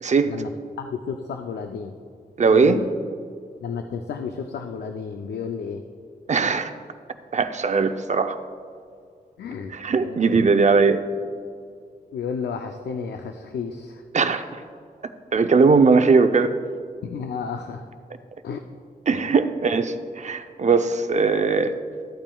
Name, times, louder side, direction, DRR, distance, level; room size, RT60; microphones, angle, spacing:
voice 1, 0.0-0.3 2.4-2.8 6.3-6.7 7.3-8.4 9.7-11.1 14.1-14.6 15.3-16.5 19.1-21.8, right 4 dB, 45° right, 9 dB, 0.6 m, -19 dB
voice 2, 0.8-1.9 2.5-2.9 3.6-5.8 9.4-9.7 10.0-10.2 12.1-14.0 17.0-17.8 18.4-18.6 19.1-19.3, left 6 dB, 90° left, 5 dB, 0.5 m, -32 dB
13.5 x 8.7 x 2.3 m, 2.3 s
cardioid pair, 80°, 17 cm